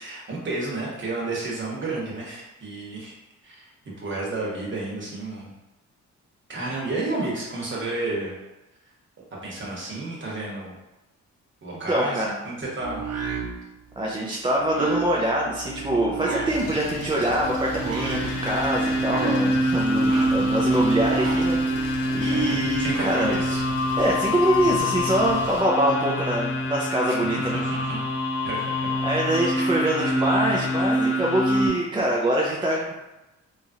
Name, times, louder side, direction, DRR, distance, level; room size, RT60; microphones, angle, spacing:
voice 1, 0.0-3.1 3.4-3.7 4.0-5.5 6.5-8.3 9.3-10.8 11.6-13.0 20.0-20.5 22.2-23.6 27.1-27.2 27.5-28.0 28.4-28.9 29.5-29.7, right 2 dB, 40° right, -4 dB, 1.1 m, -31 dB
voice 2, 11.9-12.3 14.0-23.3 24.0-27.6 29.0-32.9, right 1 dB, 15° right, -3 dB, 0.4 m, -24 dB
sound 1, 12.8-22.8, right 5 dB, 55° right, 0.6 m, -33 dB
sound 2, 16.5-25.6, left 3 dB, 85° left, 0.7 m, -39 dB
sound 3, 17.4-31.7, left 1 dB, 45° left, 0.7 m, -25 dB
2.9 x 2.4 x 2.7 m, 1.0 s
cardioid pair, 90°, 30 cm